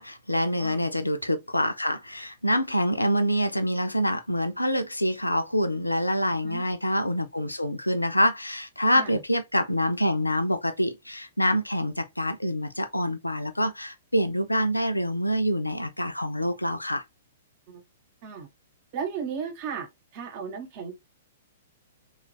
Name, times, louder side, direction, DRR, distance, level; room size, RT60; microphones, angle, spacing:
voice 1, 0.0-17.0, equal, 90° left, 0.4 m, -26 dB
voice 2, 18.9-19.9 20.1-20.9, right 6 dB, 40° right, 0.8 m, -35 dB
3.0 x 2.4 x 2.6 m
figure-of-eight pair, 110°, 0 cm